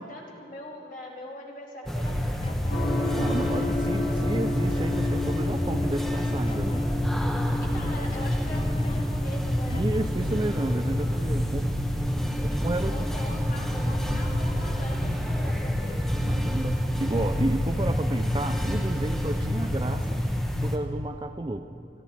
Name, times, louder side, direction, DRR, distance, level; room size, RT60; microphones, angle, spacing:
voice 1, 0.0-2.6 7.6-9.8 12.8-16.1, left 1 dB, 50° left, -2 dB, 2.7 m, -41 dB
sound 1, 1.9-20.8, equal, ahead, 0.9 m, -28 dB
sound 2, 2.4-2.9 6.5-7.0 8.5-9.2 9.7-10.2, left 1 dB, 30° left, 0.7 m, -36 dB
Gong, 2.7-13.5, left 2 dB, 65° left, 3.5 m, -34 dB
voice 2, 3.1-6.8 9.7-11.7 12.4-13.2 13.5-14.2 16.2-20.2 20.6-21.7, right 2 dB, 25° right, 9 dB, 0.4 m, -32 dB
27.0 x 12.0 x 4.2 m, 2.7 s
head